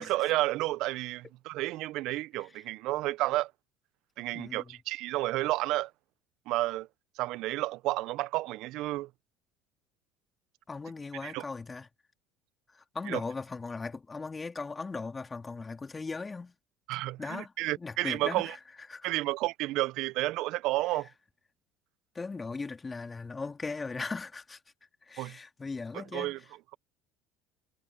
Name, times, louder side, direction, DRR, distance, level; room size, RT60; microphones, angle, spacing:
voice 1, 0.0-3.5 4.2-5.9 6.5-6.9 7.2-9.1 11.2-11.4 13.1-13.2 16.9-18.6 19.0-21.1 25.2-25.4 25.9-26.4, right 18 dB, 65° right, 0.9 m, -31 dB
voice 2, 4.3-4.8 10.7-11.9 12.7-16.5 17.2-17.5 17.8-18.6 18.9-19.1 22.1-24.6 25.0-26.4, left 4 dB, 20° left, 2.8 m, -38 dB
hypercardioid pair, 75°, 0 cm